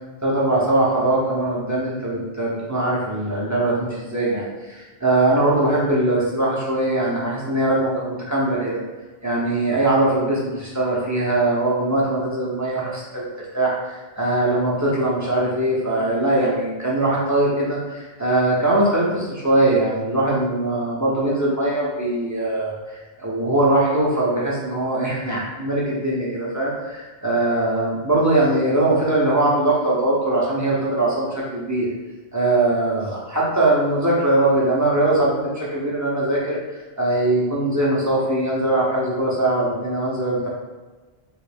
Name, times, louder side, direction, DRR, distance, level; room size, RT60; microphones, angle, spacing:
voice 1, 0.2-8.8 9.2-31.9 32.3-40.5, right 2 dB, 20° right, -6 dB, 0.6 m, -21 dB
3.1 x 2.4 x 3.3 m, 1.2 s
omnidirectional pair, 1.1 m